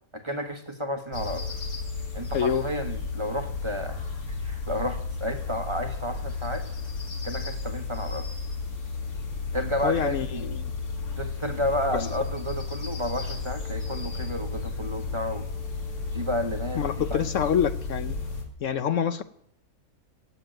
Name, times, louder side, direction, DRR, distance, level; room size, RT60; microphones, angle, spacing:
voice 1, 0.1-1.5 2.1-4.0 4.3-6.7 7.2-8.3 9.5-10.6 11.2-15.5 16.1-16.8 17.1-17.2, equal, 20° right, 7 dB, 1.2 m, -31 dB
sound 1, 1.1-18.4, left 4 dB, 85° left, 2.8 m, -33 dB
voice 2, 2.3-2.7 9.8-10.7 11.9-12.1 16.7-18.2 18.6-19.2, left 8 dB, 65° left, 11 dB, 1.0 m, -26 dB
16.5 x 7.9 x 9.0 m, 0.74 s
omnidirectional pair, 1.5 m